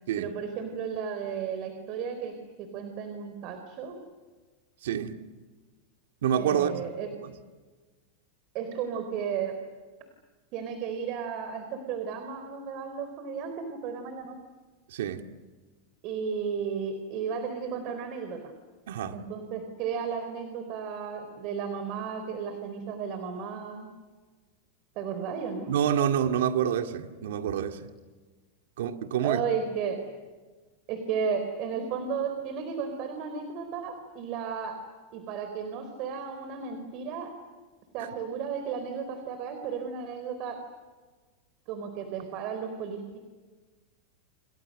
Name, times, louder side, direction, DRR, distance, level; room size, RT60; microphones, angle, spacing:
voice 1, 0.2-4.0 6.3-7.1 8.5-9.5 10.5-14.4 16.0-18.4 19.1-23.9 25.0-25.7 29.2-30.0 30.9-34.8 35.1-37.3 37.9-40.6 41.7-43.2, right 6 dB, 45° right, 4.0 m, -34 dB
voice 2, 4.8-5.1 6.2-6.9 7.2-7.3 14.9-15.2 18.9-19.2 25.7-27.9 28.8-29.4 38.0-38.1, right 9 dB, 80° right, 2.3 m, -27 dB
29.5 x 27.5 x 6.6 m
supercardioid pair, 140°, 0 cm